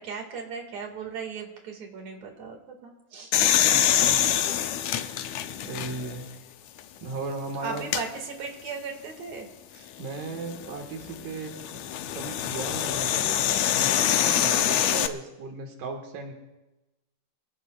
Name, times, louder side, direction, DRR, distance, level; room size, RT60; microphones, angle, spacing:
voice 1, 0.0-3.3 4.3-4.5 5.1-6.0 7.5-9.9 14.3-14.6, right 5 dB, 60° right, 3 dB, 3.3 m, -38 dB
sound 1, 3.3-6.2 6.8-6.9 7.8-8.0 10.2-15.1, left 11 dB, 75° left, 1.8 m, -25 dB
voice 2, 3.6-4.2 5.7-6.3 7.0-7.9 10.0-11.8 12.1-13.3 13.7-16.3, right 3 dB, 85° right, 3 dB, 3.3 m, -36 dB
25.5 x 17.5 x 2.4 m, 1.0 s
omnidirectional pair, 3.6 m